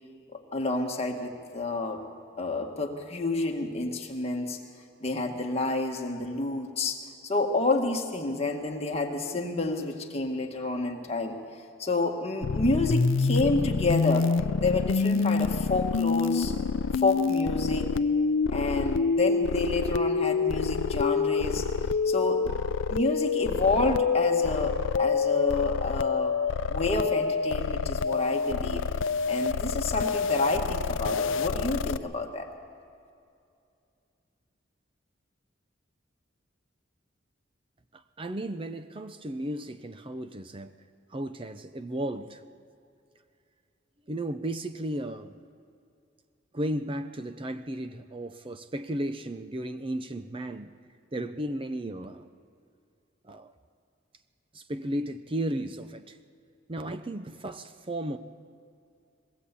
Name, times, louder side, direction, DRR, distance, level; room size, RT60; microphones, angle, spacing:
voice 1, 0.3-2.0 2.4-4.6 5.0-11.4 11.8-14.3 14.6-16.5 16.9-17.9 18.5-21.7 22.1-22.5 22.9-26.4 26.7-28.9 29.3-32.5, left 3 dB, 35° left, 2 dB, 1.9 m, -29 dB
sound 1, 12.4-32.0, left 4 dB, 80° left, 0.5 m, -27 dB
voice 2, 37.9-40.8 41.1-42.4 44.1-45.4 46.5-50.7 51.1-52.3 53.2-53.5 54.5-56.2 56.7-58.2, right 1 dB, 25° right, 9 dB, 0.6 m, -34 dB
21.0 x 17.5 x 8.4 m, 2.5 s
head